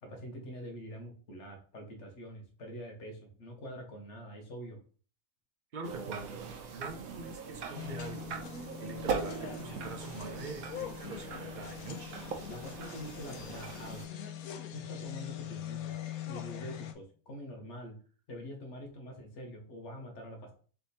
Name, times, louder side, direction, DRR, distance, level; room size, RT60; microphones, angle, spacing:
voice 1, 0.0-4.8 12.5-14.0 14.7-16.0 16.3-17.9 18.3-20.5, equal, 55° left, 2 dB, 1.3 m, -45 dB
voice 2, 5.7-6.4 6.7-8.3 8.8-12.1, right 3 dB, 45° right, 4 dB, 0.6 m, -44 dB
sound 1, 5.8-14.1, right 6 dB, 80° right, 1.1 m, -41 dB
sound 2, 7.7-16.9, left 10 dB, 80° left, 1.1 m, -43 dB
3.5 x 3.4 x 4.1 m, 0.41 s
omnidirectional pair, 1.5 m